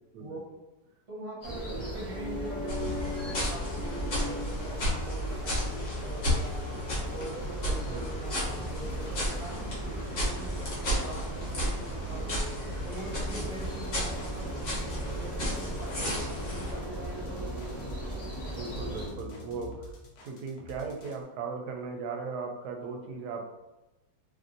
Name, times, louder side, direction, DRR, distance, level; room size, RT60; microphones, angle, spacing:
voice 1, 0.2-0.6 1.1-6.6 7.0-12.5 12.8-17.6, right 2 dB, 45° right, -4 dB, 1.2 m, -43 dB
sound 1, 1.4-19.1, right 1 dB, 20° left, 0.7 m, -37 dB
sound 2, 2.7-16.7, equal, 65° left, 1.4 m, -34 dB
sound 3, 8.2-21.2, left 1 dB, 80° left, 1.1 m, -44 dB
voice 2, 18.6-20.0 20.2-23.4, right 4 dB, 85° right, 3 dB, 1.1 m, -37 dB
3.0 x 2.5 x 2.6 m, 1.0 s
omnidirectional pair, 1.7 m